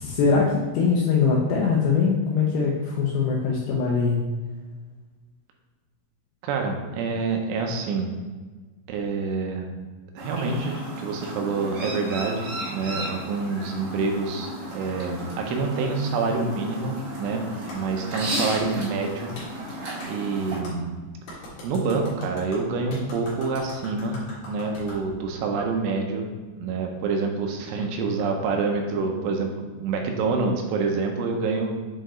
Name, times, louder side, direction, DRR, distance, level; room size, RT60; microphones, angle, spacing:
voice 1, 0.0-4.2, left 5 dB, 85° left, -2 dB, 2.5 m, -22 dB
voice 2, 6.4-8.1 8.9-9.7 10.2-19.3 20.1-21.0 21.6-24.2 24.4-26.3 26.6-29.5 29.8-31.8, right 4 dB, 80° right, 2 dB, 3.2 m, -27 dB
Chirp tweet, 10.2-20.6, right 1 dB, 65° right, 3.4 m, -34 dB
Clapping, 17.7-17.8 18.5-18.7 19.3-19.5 20.0-20.1 20.6-20.7 21.3-25.0, left 1 dB, 60° left, 3.1 m, -41 dB
7.6 x 4.5 x 3.1 m, 1.4 s
omnidirectional pair, 5.6 m